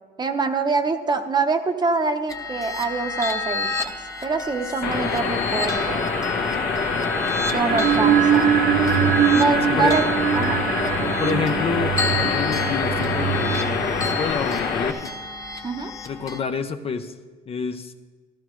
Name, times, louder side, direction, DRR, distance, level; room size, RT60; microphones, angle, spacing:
voice 1, 0.2-3.9 4.2-6.1 7.5-8.5 9.3-10.0 10.3-11.1 15.6-15.9, right 4 dB, 25° right, 7 dB, 0.8 m, -25 dB
sound 1, 2.3-16.4, left 2 dB, 20° left, 1.1 m, -30 dB
sound 2, 4.8-14.9, left 5 dB, 70° left, 1.1 m, -26 dB
sound 3, 7.4-14.3, right 9 dB, 60° right, 0.5 m, -23 dB
voice 2, 9.7-10.0 11.2-15.1 16.0-17.1 17.5-17.9, left 6 dB, 35° left, 7 dB, 0.6 m, -28 dB
14.5 x 13.0 x 3.1 m, 1.4 s
cardioid pair, 110°, 17 cm